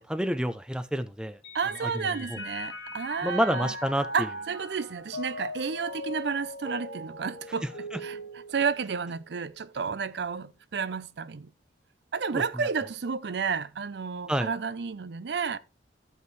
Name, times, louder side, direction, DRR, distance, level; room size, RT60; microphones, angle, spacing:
voice 1, 0.0-1.4 1.8-1.9 2.3-2.4 3.2-4.3 12.3-12.4 14.3-14.5, equal, 5° right, 0.4 m, -28 dB
Mallet percussion, 1.4-9.2, left 1 dB, 70° left, 2.2 m, -40 dB
voice 2, 1.5-3.7 4.1-11.5 12.1-15.6, right 5 dB, 65° right, 0.5 m, -31 dB
13.5 x 5.5 x 3.1 m
head